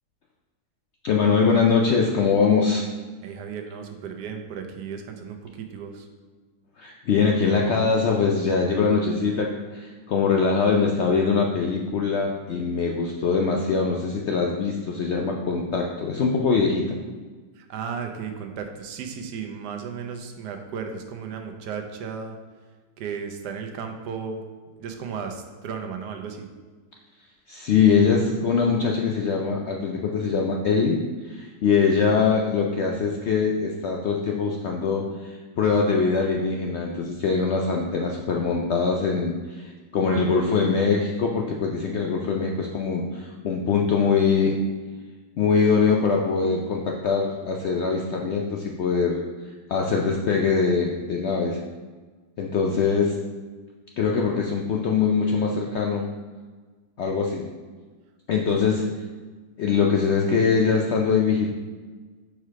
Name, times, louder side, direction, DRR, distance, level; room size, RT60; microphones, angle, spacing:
voice 1, 1.0-2.8 6.8-17.0 27.5-44.6 45.4-49.2 49.7-51.6 52.4-53.2 54.0-56.1 57.0-57.5 58.3-58.8 59.6-61.5, left 5 dB, 75° left, 0 dB, 0.6 m, -23 dB
voice 2, 3.2-6.1 17.6-22.4 23.0-24.4 24.8-26.5 58.5-58.8, right 6 dB, 90° right, 5 dB, 1.3 m, -35 dB
4.8 x 4.5 x 4.6 m, 1.4 s
omnidirectional pair, 1.7 m